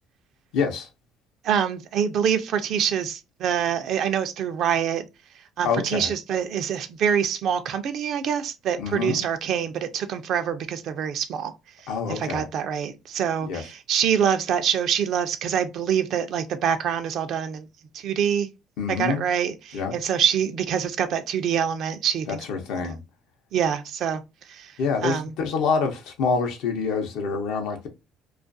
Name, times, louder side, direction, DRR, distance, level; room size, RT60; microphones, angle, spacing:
voice 1, 0.5-0.9 5.6-6.1 8.8-9.3 11.9-12.5 13.4-13.6 18.8-19.2 19.7-19.9 22.3-23.0 24.8-27.9, left 5 dB, 75° left, 0.6 m, -26 dB
voice 2, 1.4-5.0 5.6-11.5 12.1-17.7 17.9-18.5 19.0-22.4 22.8-22.9 23.5-24.2 24.5-24.7 25.0-25.3, right 8 dB, 65° right, 0.4 m, -25 dB
2.4 x 2.2 x 2.5 m
supercardioid pair, 80°, 0 cm